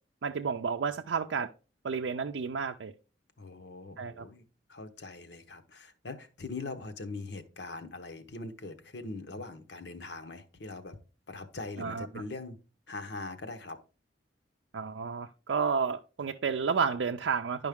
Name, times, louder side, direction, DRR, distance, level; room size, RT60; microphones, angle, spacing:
voice 1, 0.2-1.5 1.8-2.9 4.0-4.3 11.8-12.1 14.7-17.7, right 5 dB, 90° right, 5 dB, 0.4 m, -31 dB
voice 2, 3.4-4.4 4.7-11.0 11.3-12.6 12.9-13.8, left 3 dB, 70° left, 9 dB, 1.0 m, -42 dB
10.5 x 5.3 x 3.5 m, 0.34 s
head